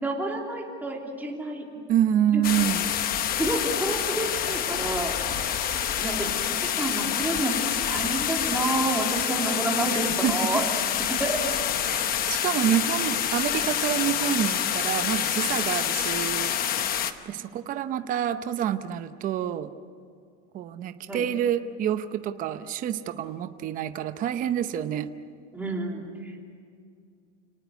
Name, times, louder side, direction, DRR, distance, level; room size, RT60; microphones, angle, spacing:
voice 1, 0.0-1.6 2.3-2.4 3.4-5.1 6.0-7.6 7.9-10.6 11.2-11.4 17.4-17.5 21.1-21.3 25.5-26.4, right 2 dB, 5° right, -1 dB, 3.0 m, -29 dB
voice 2, 1.9-2.9 10.2-10.6 11.9-12.0 12.3-16.6 17.3-19.7 20.5-25.1, right 10 dB, 25° right, 9 dB, 0.8 m, -27 dB
sound 1, 2.4-17.1, left 9 dB, 25° left, 0.9 m, -27 dB
29.5 x 19.0 x 8.2 m, 2.3 s
supercardioid pair, 170°, 34 cm